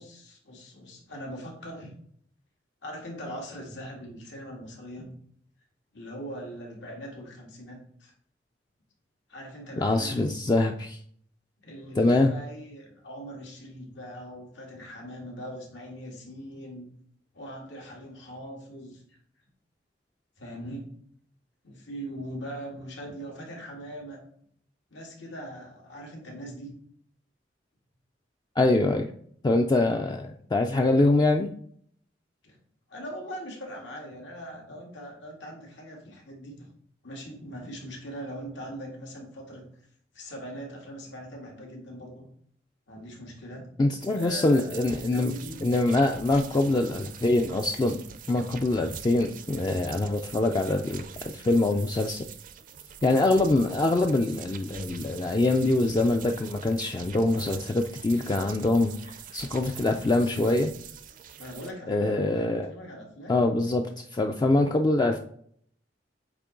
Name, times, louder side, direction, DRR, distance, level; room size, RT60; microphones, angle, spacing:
voice 1, 0.0-1.9 2.8-5.1 5.9-8.1 9.3-10.3 11.6-16.9 17.3-19.2 20.4-20.9 21.6-24.2 24.9-26.7 32.4-32.6 32.9-36.7 37.0-39.6 40.1-42.3 42.9-43.7 44.1-45.7 46.3-46.8 61.4-63.4, equal, 85° left, -1 dB, 1.8 m, -41 dB
voice 2, 9.8-11.0 12.0-12.3 28.6-29.1 29.4-31.5 43.8-45.3 45.6-48.0 48.3-52.2 53.0-60.7 61.9-62.7 63.3-65.2, left 2 dB, 25° left, 3 dB, 0.3 m, -24 dB
sound 1, 44.0-61.7, right 8 dB, 50° right, 0.5 m, -44 dB
8.2 x 3.0 x 3.8 m, 0.62 s
head